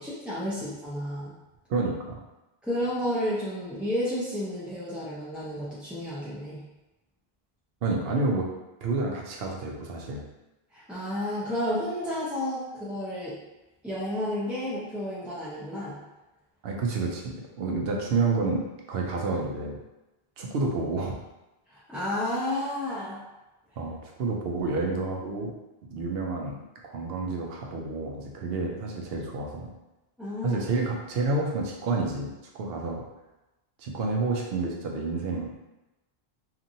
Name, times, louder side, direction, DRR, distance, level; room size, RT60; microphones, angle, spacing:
voice 1, 0.0-1.3 2.6-6.6 10.7-13.4 13.8-16.0 21.7-23.2 30.2-30.6, left 1 dB, ahead, -10 dB, 0.3 m, -31 dB
voice 2, 1.7-2.2 7.8-8.5 8.8-10.2 16.6-19.8 20.4-21.1 23.8-25.5 25.9-29.7 30.4-33.0 33.8-35.5, right 3 dB, 75° right, 0 dB, 0.8 m, -29 dB
2.8 x 2.5 x 2.6 m, 1.0 s
omnidirectional pair, 1.0 m